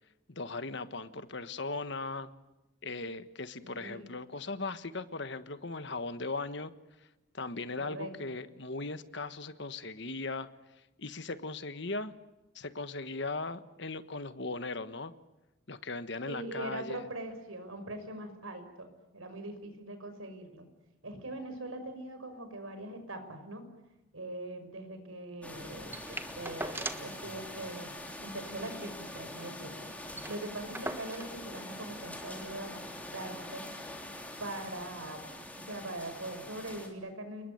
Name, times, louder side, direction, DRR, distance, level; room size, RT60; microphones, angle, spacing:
voice 1, 0.3-2.3 2.8-6.7 7.3-10.5 11.0-12.1 12.5-15.1 15.7-17.0, left 3 dB, 60° left, 12 dB, 1.4 m, -38 dB
voice 2, 3.6-4.1 7.8-8.4 16.2-18.9 19.1-20.7 21.0-23.7 24.1-32.8 33.1-33.7 34.4-35.3 35.6-37.5, right 1 dB, 90° right, 8 dB, 5.7 m, -42 dB
sound 1, 25.4-36.9, left 1 dB, 5° left, 3.6 m, -44 dB
sound 2, 25.9-27.2 27.5-27.6 27.9-28.1 28.5-29.6 29.9-30.0 30.1-31.4 32.3-32.4, right 2 dB, 10° right, 1.3 m, -41 dB
30.0 x 20.5 x 9.5 m, 1.0 s
head